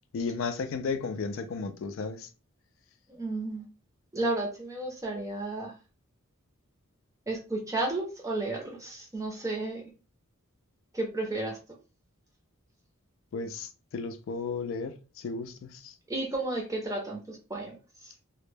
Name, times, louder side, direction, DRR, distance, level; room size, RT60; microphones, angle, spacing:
voice 1, 0.1-2.3 13.3-15.9, left 4 dB, 65° left, 0.3 m, -34 dB
voice 2, 3.1-3.7 4.1-5.7 7.3-9.8 10.9-11.6 16.1-17.7 18.0-18.1, right 2 dB, 15° right, 0.5 m, -32 dB
2.1 x 2.1 x 3.1 m
head